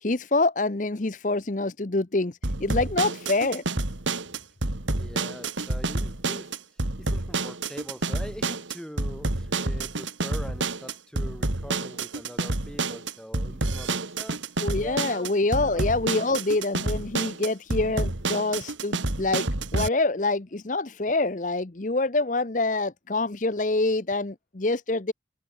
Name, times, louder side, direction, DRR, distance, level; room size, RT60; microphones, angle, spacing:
voice 1, 0.0-3.6 14.6-19.4 19.7-25.1, left 2 dB, 40° left, 0.9 m, -26 dB
sound 1, 2.4-19.9, right 2 dB, 85° right, 2.5 m, -29 dB
voice 2, 4.9-14.4 14.8-15.3 15.6-15.9, equal, 5° left, 6.2 m, -43 dB
head